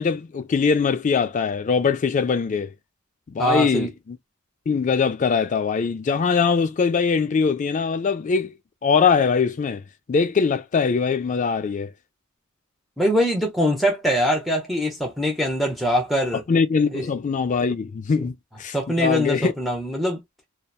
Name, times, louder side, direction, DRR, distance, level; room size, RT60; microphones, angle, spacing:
voice 1, 0.0-2.7 3.3-4.2 4.7-8.5 8.8-9.8 10.1-11.9 16.5-19.5, left 5 dB, 35° left, 0.3 m, -22 dB
voice 2, 3.4-3.9 13.0-16.4 16.8-17.0 18.7-20.2, equal, ahead, 0.6 m, -23 dB
2.8 x 2.1 x 2.3 m
head